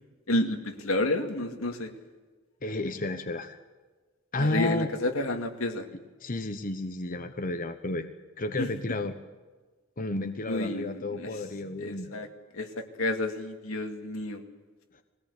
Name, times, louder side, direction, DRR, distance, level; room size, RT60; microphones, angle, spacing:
voice 1, 0.3-1.9 4.4-5.9 8.6-8.7 10.5-11.3 11.8-12.3 12.5-14.4, left 1 dB, 85° left, 4 dB, 2.4 m, -30 dB
voice 2, 2.6-3.6 4.3-4.9 6.2-8.1 8.4-9.1 10.0-12.3, left 2 dB, 40° left, 7 dB, 1.1 m, -32 dB
22.0 x 17.5 x 8.5 m, 1.4 s
head